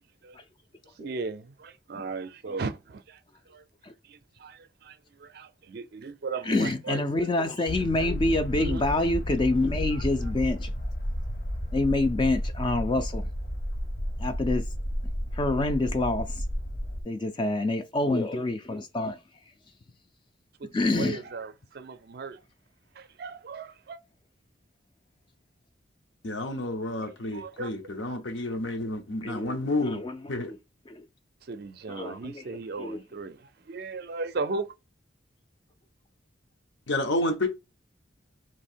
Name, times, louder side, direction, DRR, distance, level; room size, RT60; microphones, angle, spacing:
voice 1, 1.0-3.2 3.5-3.6 4.0-7.3 8.0-8.1 8.6-8.8 9.3-9.4 9.9-10.3 20.6-22.4 23.0-24.0 27.0-27.7 31.4-34.7, right 4 dB, 55° right, 0.4 m, -37 dB
voice 2, 6.5-10.7 11.7-13.3 14.2-14.6 15.4-16.3 17.1-19.2 20.7-21.2 29.2-29.5 30.0-30.1 30.5-30.6 30.9-31.0 32.0-32.4 32.8-33.0, left 2 dB, 25° left, 0.3 m, -26 dB
sound 1, 7.7-17.0, equal, 50° left, 1.0 m, -32 dB
voice 3, 26.2-30.0 30.3-30.5 36.9-37.5, left 2 dB, 75° left, 0.9 m, -30 dB
3.0 x 2.7 x 4.3 m
head